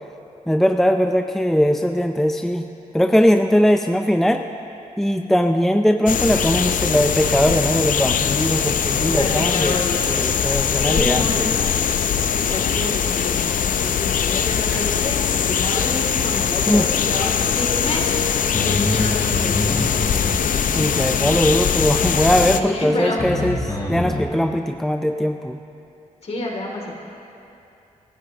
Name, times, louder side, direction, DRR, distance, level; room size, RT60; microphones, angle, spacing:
voice 1, 0.5-2.7 2.9-4.5 5.0-9.8 10.1-11.6 16.7-16.9 20.7-25.6, equal, ahead, 6 dB, 0.5 m, -20 dB
sound 1, 6.1-22.6, left 8 dB, 75° left, 0.6 m, -21 dB
voice 2, 9.1-10.1 10.7-11.6 12.3-18.1 18.5-20.1 22.5-23.2 26.2-26.9, left 2 dB, 50° left, 0 dB, 2.7 m, -29 dB
sound 2, 18.5-24.2, left 1 dB, 25° left, 4.1 m, -27 dB
25.0 x 13.5 x 2.9 m, 2.8 s
cardioid pair, 85°, 14 cm